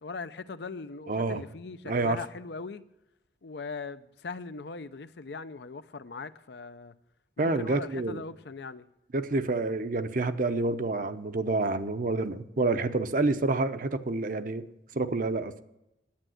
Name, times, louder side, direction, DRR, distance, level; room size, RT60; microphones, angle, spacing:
voice 1, 0.0-2.8 3.4-6.9 7.4-8.9, left 4 dB, 70° left, 0.6 m, -40 dB
voice 2, 1.1-1.4 1.9-2.2 7.4-8.2 9.1-14.7 14.9-15.6, right 2 dB, 50° right, 0.7 m, -28 dB
10.5 x 8.9 x 7.7 m
head